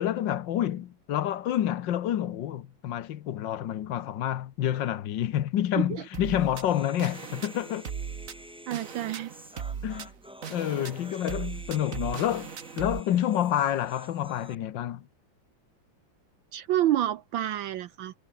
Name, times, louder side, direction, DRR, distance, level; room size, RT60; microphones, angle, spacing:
voice 1, 0.0-7.8 9.8-10.1 10.5-12.5 12.8-15.1, left 11 dB, 65° left, 1.6 m, -28 dB
sound 1, 6.1-13.0, right 7 dB, 45° right, 1.5 m, -38 dB
Human voice, 6.5-14.6, equal, ahead, 4.0 m, -49 dB
voice 2, 8.7-9.3 16.5-18.1, right 12 dB, 70° right, 1.5 m, -28 dB
omnidirectional pair, 2.3 m